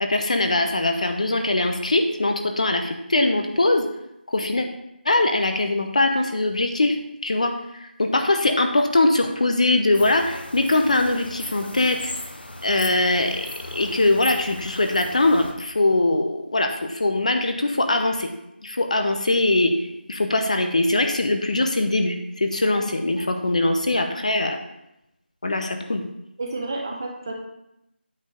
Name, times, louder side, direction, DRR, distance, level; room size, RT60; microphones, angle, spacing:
voice 1, 0.0-3.9 4.3-4.7 5.0-7.0 7.2-12.1 12.6-18.3 18.6-24.6 25.4-26.0, left 2 dB, 40° left, 5 dB, 0.7 m, -22 dB
sound 1, 9.9-15.5, left 1 dB, 60° left, 1.2 m, -37 dB
voice 2, 26.4-27.3, right 2 dB, 20° right, 1 dB, 0.7 m, -31 dB
8.5 x 4.4 x 4.9 m, 0.86 s
figure-of-eight pair, 175°, 6 cm